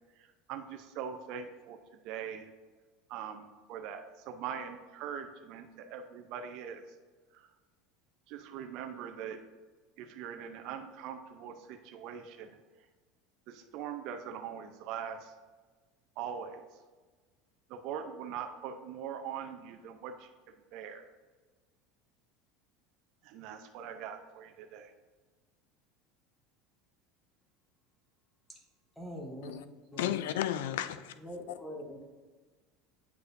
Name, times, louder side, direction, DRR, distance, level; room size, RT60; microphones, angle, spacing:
voice 1, 0.2-1.8 2.0-2.5 3.1-6.8 7.3-7.5 8.3-9.4 10.0-12.5 13.5-15.3 16.2-16.8 17.7-21.1 23.2-24.9, right 8 dB, 60° right, 5 dB, 0.6 m, -42 dB
voice 2, 29.0-29.5 29.9-30.1 31.2-32.1, equal, 5° left, 0 dB, 1.0 m, -43 dB
voice 3, 30.0-31.1 31.5-31.6, left 12 dB, 85° left, 13 dB, 0.4 m, -33 dB
8.3 x 4.7 x 2.6 m, 1.3 s
supercardioid pair, 125°, 0 cm